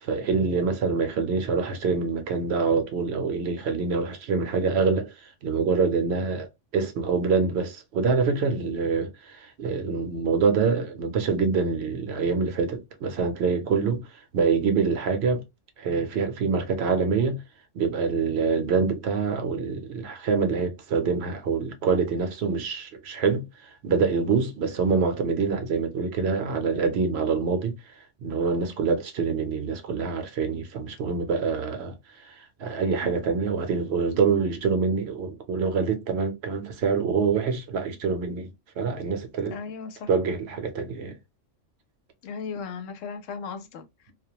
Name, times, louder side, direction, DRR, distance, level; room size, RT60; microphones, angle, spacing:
voice 1, 0.0-15.4 15.8-17.4 17.7-38.5 38.8-39.6 40.1-41.2, right 5 dB, 65° right, 0.8 m, -26 dB
voice 2, 39.5-40.1 42.2-44.1, left 5 dB, 85° left, 0.9 m, -36 dB
2.3 x 2.1 x 2.8 m
omnidirectional pair, 1.3 m